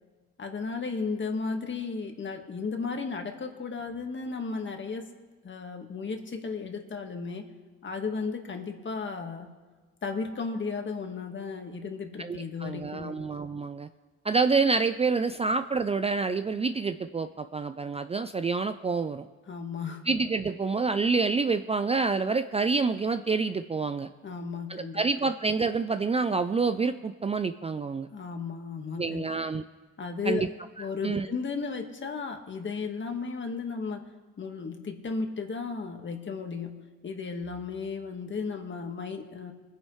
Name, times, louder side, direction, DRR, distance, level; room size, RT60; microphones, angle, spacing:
voice 1, 0.4-5.1 5.4-7.5 7.8-9.5 10.0-13.2 19.5-20.1 24.2-25.0 28.1-29.2 30.0-30.5 30.8-34.1 34.4-36.7 37.0-39.5, left 4 dB, 40° left, 4 dB, 1.7 m, -34 dB
voice 2, 12.2-13.9 14.2-19.3 20.1-24.1 24.7-28.1 29.0-29.6 30.2-30.5 30.8-31.3, right 4 dB, 20° right, 10 dB, 0.4 m, -27 dB
22.0 x 9.8 x 3.3 m, 1.4 s
cardioid pair, 90°, 30 cm